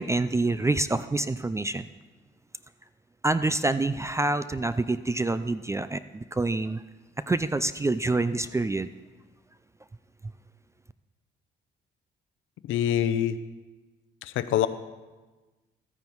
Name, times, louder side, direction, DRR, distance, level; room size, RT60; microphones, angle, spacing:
voice 1, 0.0-1.9 3.2-6.8 7.3-8.9, right 2 dB, 15° right, 13 dB, 0.4 m, -27 dB
voice 2, 12.7-13.4 14.2-14.7, left 10 dB, 80° left, 12 dB, 0.6 m, -25 dB
13.5 x 9.3 x 4.6 m, 1.2 s
cardioid pair, 90°, 20 cm